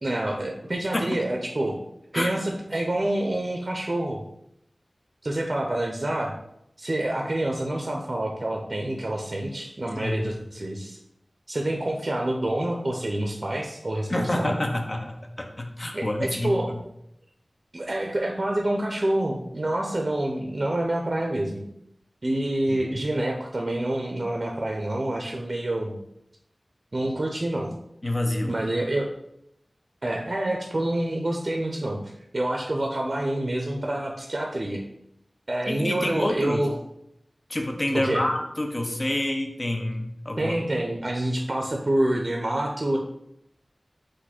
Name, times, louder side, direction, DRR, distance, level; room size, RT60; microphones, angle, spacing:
voice 1, 0.0-1.8 2.1-4.2 5.2-6.3 6.8-11.0 11.5-14.6 15.9-16.7 17.7-21.6 22.2-25.9 26.9-27.7 28.5-29.1 30.0-34.8 35.5-36.7 37.9-38.2 40.4-43.0, right 1 dB, 50° right, 1 dB, 0.5 m, -27 dB
voice 2, 10.0-10.3 14.1-16.5 22.7-22.8 28.0-28.6 35.7-36.6 37.5-40.5, left 1 dB, 45° left, 3 dB, 0.6 m, -28 dB
4.1 x 2.5 x 4.3 m, 0.76 s
wide cardioid pair, 65°, 0 cm